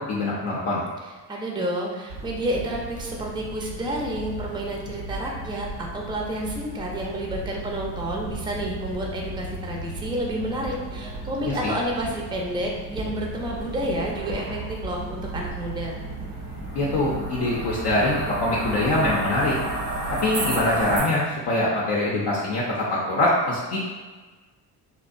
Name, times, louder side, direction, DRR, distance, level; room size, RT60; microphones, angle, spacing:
voice 1, 0.1-0.8 11.5-11.7 16.7-19.6 20.2-23.8, left 1 dB, 65° left, -5 dB, 0.6 m, -23 dB
voice 2, 1.3-16.0, right 1 dB, 10° right, -1 dB, 0.4 m, -30 dB
sound 1, 2.1-21.0, right 2 dB, 85° right, 0.8 m, -34 dB
2.6 x 2.1 x 2.4 m, 1.3 s
hypercardioid pair, 55°, 45 cm